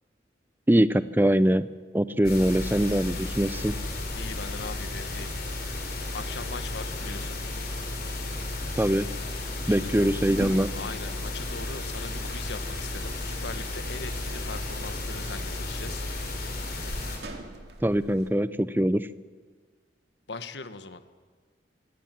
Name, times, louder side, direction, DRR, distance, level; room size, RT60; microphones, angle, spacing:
voice 1, 0.7-1.7 1.9-3.8 8.8-9.1 9.7-10.7 17.8-19.1, right 1 dB, 10° right, 15 dB, 0.5 m, -23 dB
sound 1, 2.2-17.2, left 2 dB, 55° left, 4.2 m, -33 dB
voice 2, 4.1-5.3 6.1-7.4 9.5-10.1 10.7-16.0 20.3-21.0, left 4 dB, 75° left, 11 dB, 1.2 m, -40 dB
sound 2, 10.2-18.3, right 2 dB, 65° right, 2.1 m, -44 dB
24.5 x 16.5 x 7.5 m, 1.5 s
head